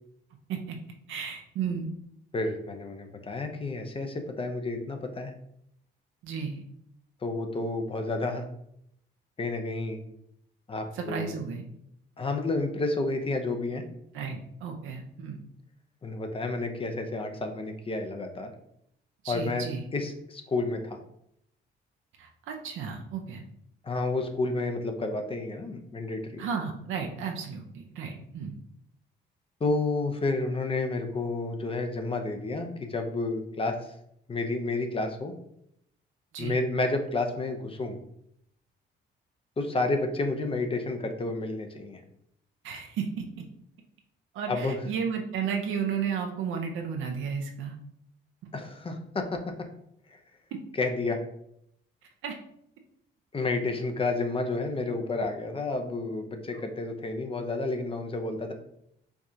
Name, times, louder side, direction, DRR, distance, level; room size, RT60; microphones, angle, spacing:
voice 1, 1.1-1.9 6.2-6.6 10.9-11.7 14.1-15.4 19.2-19.9 22.2-23.4 26.4-28.6 36.3-36.6 42.6-43.2 44.3-47.7 52.2-52.4 56.5-56.6 58.3-58.4, right 6 dB, 80° right, 3 dB, 0.6 m, -33 dB
voice 2, 2.3-5.3 7.2-8.5 9.4-10.0 10.7-11.4 12.2-13.8 16.0-18.5 19.3-21.0 23.8-26.5 29.6-33.8 34.3-35.3 36.4-38.0 39.6-42.0 44.5-44.8 48.5-49.4 50.1-50.2 50.8-51.2 53.3-58.5, left 2 dB, 25° left, 5 dB, 0.5 m, -30 dB
4.6 x 2.4 x 2.6 m, 0.74 s
cardioid pair, 90°, 20 cm